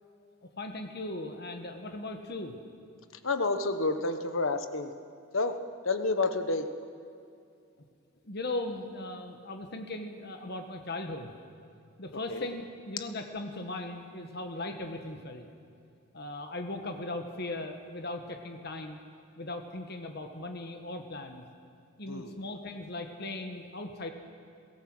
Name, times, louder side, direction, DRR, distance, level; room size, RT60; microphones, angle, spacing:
voice 1, 0.4-2.6 8.2-11.3 12.0-15.5 16.1-19.0 19.4-21.5 22.0-24.1, left 2 dB, 50° left, 5 dB, 1.4 m, -38 dB
voice 2, 3.2-4.9 5.3-5.5 5.8-6.7 12.3-12.4 22.1-22.3, left 3 dB, 70° left, 8 dB, 1.3 m, -29 dB
22.0 x 17.5 x 7.9 m, 2.4 s
head